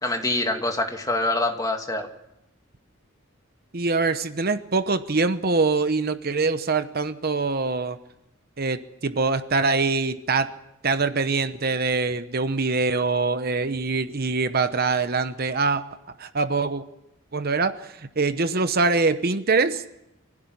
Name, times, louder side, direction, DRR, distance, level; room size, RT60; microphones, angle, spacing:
voice 1, 0.0-2.1, left 2 dB, 15° left, 3 dB, 2.3 m, -25 dB
voice 2, 3.7-8.0 8.6-10.5 10.8-15.8 16.2-16.8 17.3-19.8, right 4 dB, 50° right, 11 dB, 1.0 m, -24 dB
25.0 x 16.0 x 9.7 m, 0.89 s
head